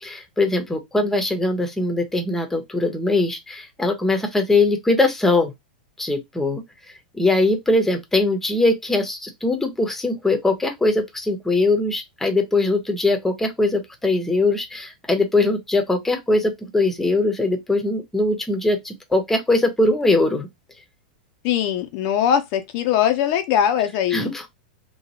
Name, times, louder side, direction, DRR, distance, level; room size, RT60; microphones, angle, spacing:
voice 1, 0.0-5.5 6.0-6.6 7.1-20.5 24.1-24.5, left 2 dB, 5° left, 0.7 m, -21 dB
voice 2, 21.4-24.3, left 9 dB, 50° left, 0.5 m, -21 dB
2.9 x 2.2 x 2.8 m
hypercardioid pair, 105°, 5 cm